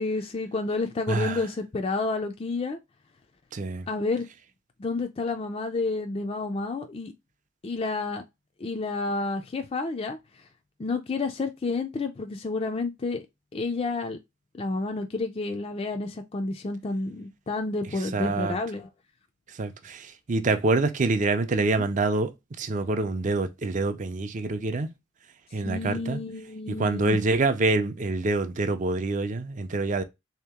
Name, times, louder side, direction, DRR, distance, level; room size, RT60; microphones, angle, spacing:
voice 1, 0.0-2.8 3.9-4.3 4.8-7.1 7.6-8.2 8.6-10.2 10.8-13.2 13.5-14.2 14.5-18.9 21.7-21.9 25.7-27.2, left 3 dB, 30° left, 0.4 m, -30 dB
voice 2, 1.1-1.4 3.5-3.9 18.1-18.6 19.6-22.3 22.6-24.9 25.5-26.2 26.8-30.0, right 3 dB, 40° right, 0.4 m, -26 dB
3.5 x 2.8 x 3.4 m
head